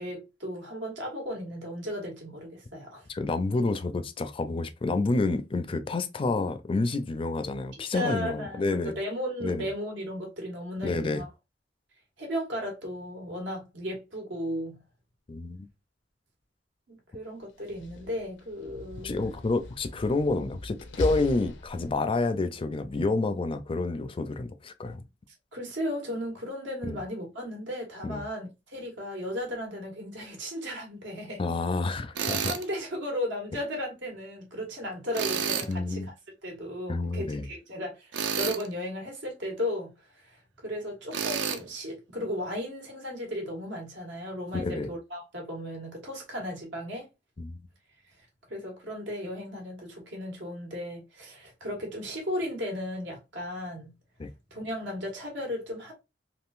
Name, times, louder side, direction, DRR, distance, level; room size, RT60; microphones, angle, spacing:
voice 1, 0.0-3.0 7.9-11.3 12.2-14.8 16.9-19.1 25.5-31.4 32.5-36.0 36.4-39.9 40.2-47.1 48.5-53.9 54.5-55.9, equal, 90° right, 1.5 m, -35 dB
voice 2, 3.1-8.9 9.4-9.7 10.8-11.2 15.3-15.7 19.0-25.0 26.8-27.0 28.0-28.2 31.4-32.5 35.7-36.1 36.9-37.5 44.5-44.9 47.4-47.6 54.2-54.3, left 3 dB, 30° left, 0.4 m, -29 dB
Slam, 17.5-22.2, left 1 dB, 90° left, 0.6 m, -39 dB
Tools, 32.1-32.6 35.1-35.7 38.1-38.7 41.1-41.6, right 7 dB, 70° right, 0.5 m, -29 dB
3.7 x 2.5 x 2.4 m
head